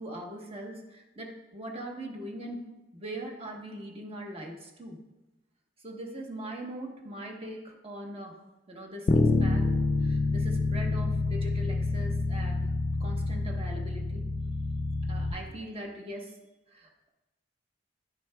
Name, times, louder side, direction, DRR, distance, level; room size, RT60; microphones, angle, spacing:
voice 1, 0.0-2.7 2.9-5.0 5.8-8.4 8.7-9.7 10.0-12.6 13.0-14.3 15.1-16.4 16.7-17.1, right 1 dB, 30° right, 0 dB, 1.1 m, -41 dB
Bass guitar, 9.1-15.3, left 3 dB, 35° left, 0.4 m, -27 dB
10.5 x 6.1 x 2.3 m, 1.0 s
head